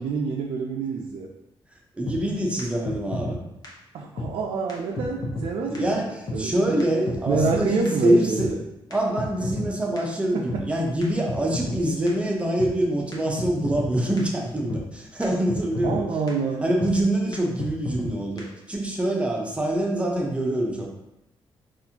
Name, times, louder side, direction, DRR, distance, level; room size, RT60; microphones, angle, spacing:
voice 1, 0.0-1.3 3.9-6.0 6.3-6.8 7.3-8.6 10.3-10.7 15.8-16.7, right 4 dB, 75° right, 0 dB, 0.4 m, -27 dB
voice 2, 1.9-3.4 5.7-8.6 8.9-16.1 16.6-20.9, right 1 dB, 10° right, -1 dB, 0.7 m, -25 dB
sound 1, 2.1-2.2 2.6-2.7 2.9-3.4 3.6-3.7 4.2-4.3 4.7-4.8 5.0-5.5 5.7-5.8 6.3-6.4 6.8-6.9 7.1-7.6 7.9-8.0 8.4-8.5 8.9-9.7 10.0-10.1 10.5-10.6 11.0-11.1 11.3-11.8 12.1-12.2 12.6-12.7 13.1-13.2 13.4-13.9 14.2-14.3 14.7-14.8 15.2-15.3 15.5-16.0 16.3-16.4 16.8-16.9 17.3-17.4 17.6-18.1 18.4-18.5, left 2 dB, 45° left, 0.8 m, -30 dB
4.1 x 2.5 x 2.8 m, 0.90 s
cardioid pair, 120°, 9 cm